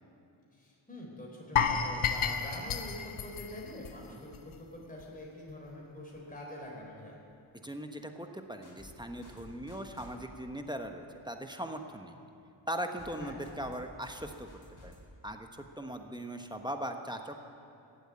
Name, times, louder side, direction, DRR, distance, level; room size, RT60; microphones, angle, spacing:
voice 1, 0.5-7.2 13.2-13.3, left 1 dB, 15° left, -2 dB, 3.6 m, -45 dB
sound 1, 1.6-4.6 4.8-5.0 5.5-5.6, left 7 dB, 80° left, 1.0 m, -32 dB
voice 2, 7.6-12.2 12.7-14.5 14.8-15.0 15.2-15.5 15.8-17.4, right 1 dB, 10° right, 5 dB, 1.1 m, -39 dB
sound 2, 8.6-8.9 9.2-10.1 13.0-13.2 13.4-13.8 14.0-15.0, left 2 dB, 35° left, 4.4 m, -52 dB
14.5 x 8.5 x 8.8 m, 2.6 s
cardioid pair, 55°, 50 cm